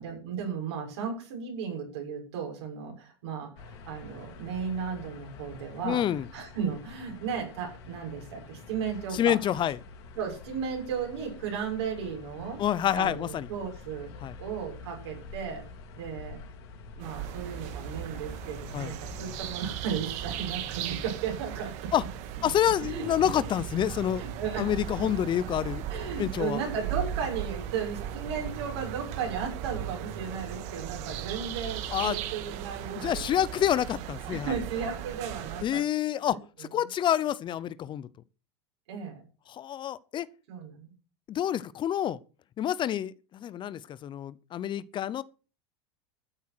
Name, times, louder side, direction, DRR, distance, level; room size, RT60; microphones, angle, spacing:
voice 1, 0.0-6.0 6.3-9.4 10.1-12.6 12.9-14.1 14.4-15.6 15.9-16.4 16.9-21.7 22.4-22.5 22.8-23.1 24.2-24.7 25.9-33.4 34.3-35.8 36.3-36.7 38.9-39.2 40.5-40.9, right 7 dB, 75° right, 6.8 m, -35 dB
sound 1, 3.6-19.7, left 3 dB, 70° left, 4.0 m, -47 dB
voice 2, 5.8-6.3 9.1-9.8 12.6-13.5 14.2-14.3 18.7-18.9 21.9-22.0 22.4-24.2 24.6-25.8 26.2-26.6 31.9-32.2 32.9-34.5 35.6-38.1 39.5-40.3 41.3-42.2 42.6-45.2, left 10 dB, 35° left, 0.7 m, -28 dB
sound 2, 17.0-35.6, right 9 dB, 55° right, 2.0 m, -37 dB
13.0 x 8.5 x 6.2 m
hypercardioid pair, 100°, 14 cm